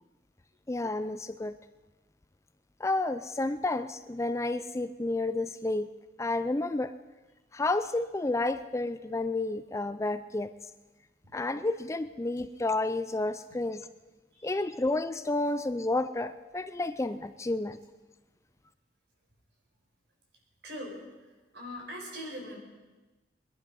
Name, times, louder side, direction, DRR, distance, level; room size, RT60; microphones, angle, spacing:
voice 1, 0.7-1.5 2.8-5.9 6.2-6.9 7.5-10.5 11.3-13.8 14.4-17.8, left 2 dB, 15° left, 12 dB, 0.4 m, -30 dB
voice 2, 20.6-21.0 21.5-22.6, equal, 70° right, 0 dB, 5.0 m, -41 dB
22.5 x 11.5 x 5.4 m, 1.2 s
head